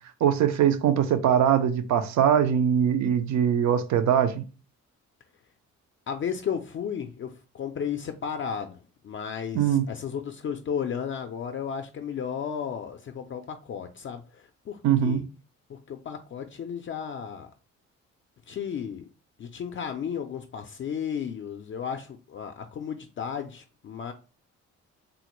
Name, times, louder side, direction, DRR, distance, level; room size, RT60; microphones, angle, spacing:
voice 1, 0.2-4.4 9.5-9.8 14.8-15.2, right 9 dB, 65° right, 0.5 m, -22 dB
voice 2, 6.1-15.2 15.7-17.5 18.5-19.1 19.4-24.1, left 7 dB, 40° left, 0.4 m, -34 dB
3.7 x 2.1 x 3.0 m
cardioid pair, 90°, 30 cm